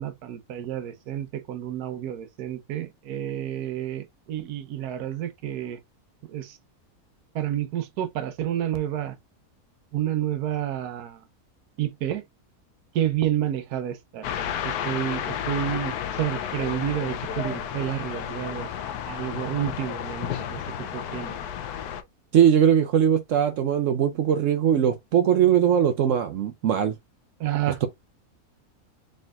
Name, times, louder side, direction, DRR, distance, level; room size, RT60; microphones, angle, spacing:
voice 1, 0.0-5.8 6.3-6.6 7.3-9.2 9.9-11.2 11.8-12.2 12.9-14.3 14.6-18.7 19.0-20.6 20.9-21.4 27.4-27.9, right 11 dB, 85° right, 1.2 m, -30 dB
sound 1, 14.2-22.0, left 9 dB, 85° left, 1.1 m, -32 dB
voice 2, 22.3-26.9, right 9 dB, 65° right, 0.8 m, -20 dB
4.2 x 3.8 x 2.4 m
omnidirectional pair, 1.6 m